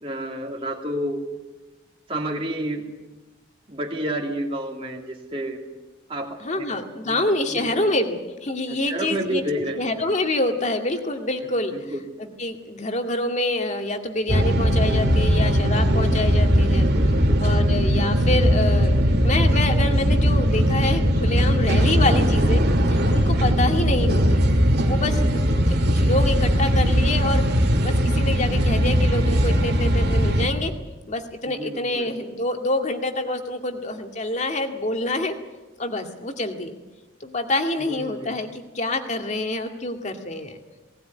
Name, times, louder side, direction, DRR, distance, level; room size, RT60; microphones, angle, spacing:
voice 1, 0.0-1.2 2.1-2.9 3.7-5.6 6.1-7.2 7.5-7.9 8.7-9.8 11.7-12.0 16.9-17.6 21.6-22.2 25.0-25.7 31.5-32.1 37.9-38.4, right 1 dB, 30° right, -1 dB, 2.7 m, -31 dB
voice 2, 6.4-11.7 12.4-16.9 17.4-18.9 19.2-22.6 22.9-24.4 24.9-25.4 26.0-27.4 27.8-30.7 31.1-35.3 35.8-36.8 37.2-40.6, left 2 dB, 35° left, 5 dB, 2.1 m, -26 dB
sound 1, 14.3-30.5, equal, 55° right, 2.3 m, -19 dB
18.5 x 18.5 x 9.4 m, 1.1 s
head